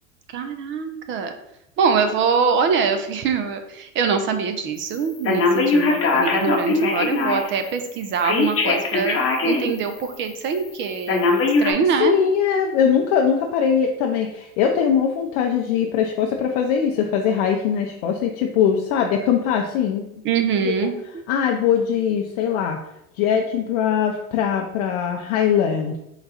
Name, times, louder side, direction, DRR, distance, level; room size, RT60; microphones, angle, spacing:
voice 1, 0.3-1.3 1.8-11.3 11.6-12.2 20.2-21.2, right 6 dB, 30° right, 7 dB, 0.4 m, -23 dB
Telephone, 5.2-7.6 8.2-9.7 10.1-10.2 11.1-11.7, left 3 dB, 30° left, 0.9 m, -20 dB
voice 2, 12.0-20.0 20.6-20.9 21.3-22.8 23.2-26.0, left 8 dB, 60° left, 1 dB, 0.6 m, -21 dB
3.9 x 2.2 x 4.1 m, 0.82 s
hypercardioid pair, 100°, 43 cm